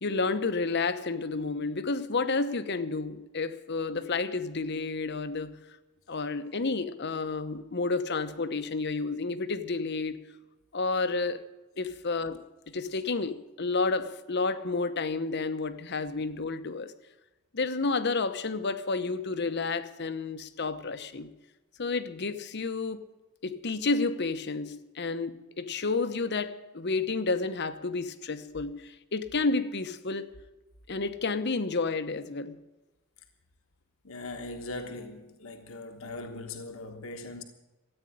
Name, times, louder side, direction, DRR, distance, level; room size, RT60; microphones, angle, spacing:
voice 1, 0.0-5.6 6.1-10.2 10.7-11.4 11.8-16.9 17.5-21.3 21.8-23.1 23.4-30.3 30.9-32.6, left 3 dB, 55° left, 0.9 m, -30 dB
voice 2, 34.0-37.4, left 2 dB, 75° left, 1.3 m, -40 dB
14.0 x 9.0 x 9.9 m
head